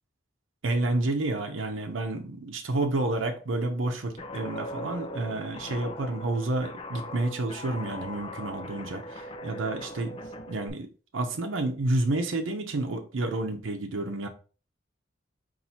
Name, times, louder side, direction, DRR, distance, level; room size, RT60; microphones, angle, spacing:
voice 1, 0.6-10.2 10.5-10.9 11.1-14.3, right 2 dB, 90° right, 0.7 m, -30 dB
Guitar, 4.2-10.7, left 1 dB, 30° left, 0.5 m, -40 dB
4.2 x 2.6 x 4.2 m
head